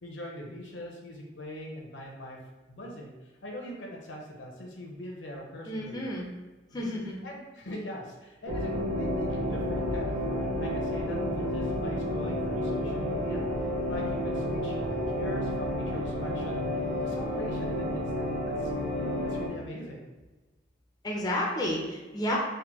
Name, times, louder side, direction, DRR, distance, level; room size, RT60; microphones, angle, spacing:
voice 1, 0.0-2.4 2.7-3.2 3.4-6.0 6.7-7.0 7.2-13.4 13.8-16.7 17.0-20.1, equal, 70° left, -1 dB, 0.7 m, -42 dB
voice 2, 5.7-6.3 6.7-7.1 21.0-22.4, left 1 dB, 20° left, -3 dB, 0.4 m, -31 dB
sound 1, 8.5-19.5, left 1 dB, 65° right, 0.8 m, -30 dB
3.4 x 2.1 x 3.0 m, 1.2 s
head